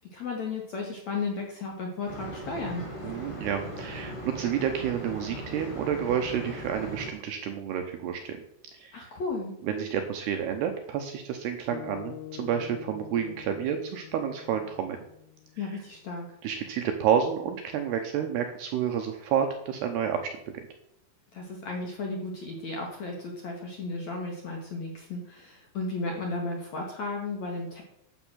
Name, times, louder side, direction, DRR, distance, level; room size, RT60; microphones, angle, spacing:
voice 1, 0.1-2.8 8.9-9.5 15.6-16.3 21.3-27.8, left 3 dB, 60° left, 1 dB, 1.9 m, -34 dB
sound 1, 2.1-7.1, right 1 dB, 10° left, 1.8 m, -39 dB
voice 2, 3.0-8.4 8.7-9.0 9.6-15.0 15.6-15.8 16.4-20.4, right 8 dB, 80° right, 5 dB, 2.4 m, -30 dB
sound 2, 11.7-16.1, left 16 dB, 80° left, 3.1 m, -45 dB
12.5 x 8.2 x 6.3 m, 0.78 s
omnidirectional pair, 5.9 m